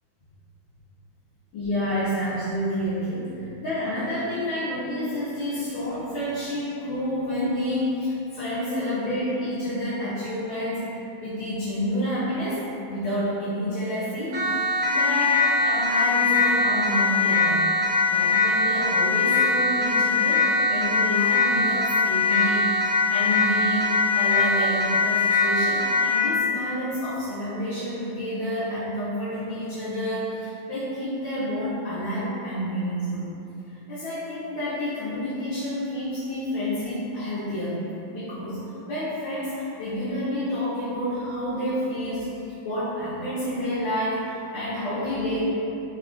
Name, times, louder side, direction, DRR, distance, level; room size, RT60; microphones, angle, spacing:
voice 1, 1.5-17.7 18.1-33.3 33.7-37.8 38.1-45.4, equal, 80° left, -12 dB, 1.4 m, -29 dB
Siren, 14.3-26.3, left 3 dB, 70° right, 1.2 m, -22 dB
3.5 x 2.3 x 2.3 m, 2.8 s
omnidirectional pair, 2.2 m